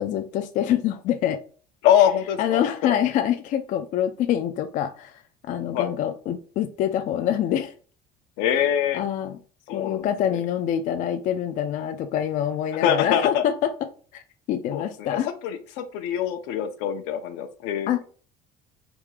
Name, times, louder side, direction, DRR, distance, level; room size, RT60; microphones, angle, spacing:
voice 1, 0.0-1.4 2.4-5.2 5.5-7.7 8.9-9.4 9.7-13.7 14.1-14.2 14.5-15.3 17.9-18.0, left 10 dB, 50° left, 0.4 m, -25 dB
voice 2, 1.8-2.9 5.7-5.9 8.4-9.0 9.7-10.4 12.8-13.4 14.7-17.9, left 10 dB, 80° left, 0.8 m, -24 dB
3.6 x 2.8 x 4.7 m
cardioid pair, 140°, 17 cm